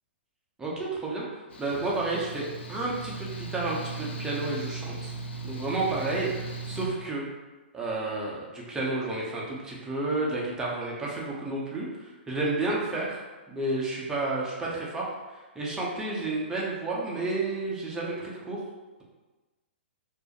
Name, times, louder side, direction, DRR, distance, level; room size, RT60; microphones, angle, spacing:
voice 1, 0.6-1.3 1.6-5.1 5.4-7.3 7.7-18.6, right 2 dB, 10° right, -5 dB, 0.6 m, -31 dB
Mechanical fan, 1.5-6.9, right 3 dB, 75° left, 0.4 m, -37 dB
2.4 x 2.1 x 2.8 m, 1.2 s
hypercardioid pair, 125°, 6 cm